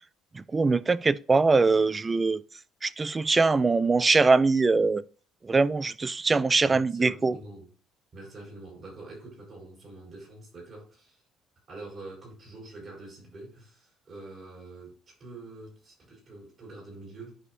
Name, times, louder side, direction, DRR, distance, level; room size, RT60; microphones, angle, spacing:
voice 1, 0.3-2.4 2.8-5.0 5.4-7.3, right 3 dB, 15° right, 0.3 m, -22 dB
voice 2, 6.6-7.7 8.1-11.2 11.7-17.4, right 2 dB, 35° right, 4.5 m, -45 dB
11.0 x 5.5 x 2.6 m
cardioid pair, 150°, 0 cm